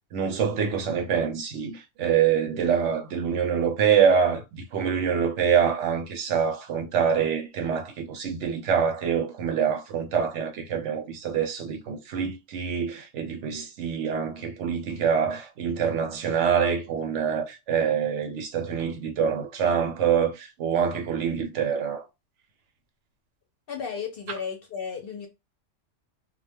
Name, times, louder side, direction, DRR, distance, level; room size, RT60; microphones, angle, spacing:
voice 1, 0.1-22.0, right 7 dB, 70° right, 0.9 m, -25 dB
voice 2, 23.7-25.3, left 6 dB, 60° left, 0.7 m, -34 dB
2.2 x 2.1 x 3.3 m
omnidirectional pair, 1.3 m